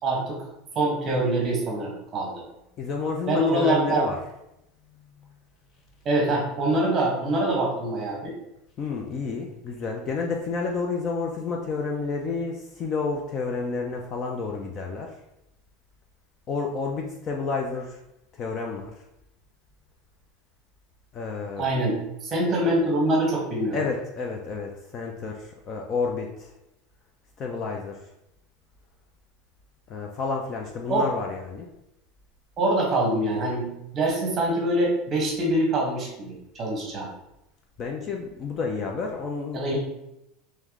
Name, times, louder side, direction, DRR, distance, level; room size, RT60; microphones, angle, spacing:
voice 1, 0.0-0.4 0.7-2.4 3.3-4.0 6.0-8.3 21.6-23.8 30.9-31.1 32.6-37.1 39.5-39.8, right 1 dB, 25° right, -1 dB, 1.1 m, -24 dB
voice 2, 2.8-4.2 8.8-15.1 16.5-18.0 18.3-18.9 21.1-21.6 23.7-26.5 27.4-28.0 29.9-31.7 37.8-39.6, left 4 dB, 25° left, 2 dB, 0.4 m, -30 dB
3.5 x 3.1 x 3.6 m, 0.85 s
supercardioid pair, 170°, 0 cm